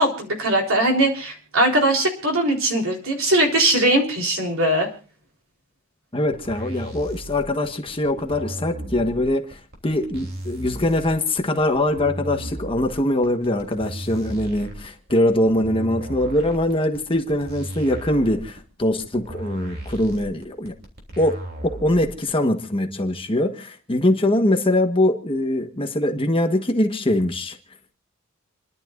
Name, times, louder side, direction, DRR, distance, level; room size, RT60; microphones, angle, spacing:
voice 1, 0.0-4.9, right 1 dB, 65° right, 3.9 m, -20 dB
voice 2, 6.1-20.7 21.2-27.6, left 1 dB, 25° left, 1.3 m, -22 dB
sound 1, 6.3-22.3, right 1 dB, 50° right, 3.1 m, -35 dB
29.5 x 11.5 x 2.6 m
head